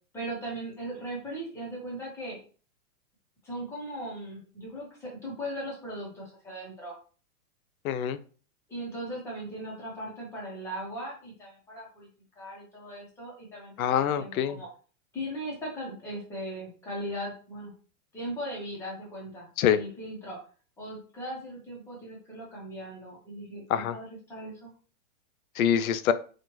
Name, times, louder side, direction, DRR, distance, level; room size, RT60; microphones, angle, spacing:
voice 1, 0.1-2.4 3.4-7.0 8.7-12.1 12.4-14.7 15.1-17.7 18.1-20.4 20.8-24.7, right 1 dB, 5° left, -4 dB, 0.7 m, -38 dB
voice 2, 7.8-8.2 13.8-14.6 19.6-19.8 23.7-23.9 25.6-26.1, left 9 dB, 75° left, 13 dB, 0.5 m, -25 dB
4.3 x 2.4 x 3.0 m, 0.39 s
supercardioid pair, 170°, 43 cm